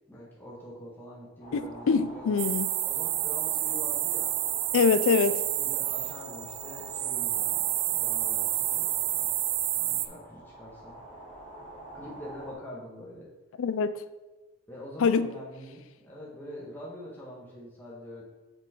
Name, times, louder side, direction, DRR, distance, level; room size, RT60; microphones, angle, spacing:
voice 1, 0.1-2.4 2.8-4.3 5.2-9.4 9.7-11.0 11.9-13.3 14.7-18.2, left 1 dB, 10° left, -7 dB, 1.4 m, -45 dB
sound 1, 1.4-12.5, right 1 dB, 35° left, 2.1 m, -46 dB
voice 2, 1.5-2.7 4.7-5.4 13.6-13.9 15.0-15.3, left 5 dB, 65° left, 13 dB, 0.4 m, -24 dB
sound 2, 2.4-10.1, right 13 dB, 45° right, 0.4 m, -29 dB
6.9 x 4.5 x 4.4 m, 1.1 s
head